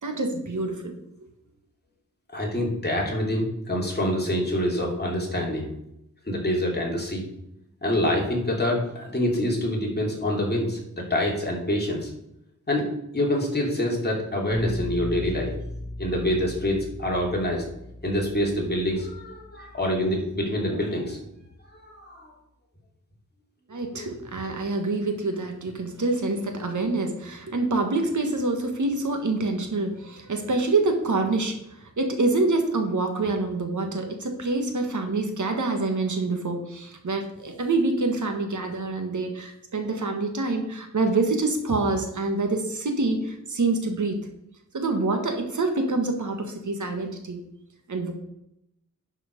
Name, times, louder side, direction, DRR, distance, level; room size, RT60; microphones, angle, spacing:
voice 1, 0.0-0.9 23.7-44.2 44.7-47.4 47.9-48.1, right 3 dB, 65° right, 5 dB, 1.7 m, -26 dB
voice 2, 2.3-5.7 6.2-7.2 7.8-12.1 12.7-12.9 13.1-15.5 16.0-17.7 18.0-21.3 21.7-22.3 23.9-24.1, left 1 dB, 30° left, -2 dB, 2.8 m, -26 dB
sound 1, 14.5-20.3, left 1 dB, 30° right, 2.0 m, -37 dB
11.0 x 4.9 x 5.3 m, 0.80 s
wide cardioid pair, 95°, 31 cm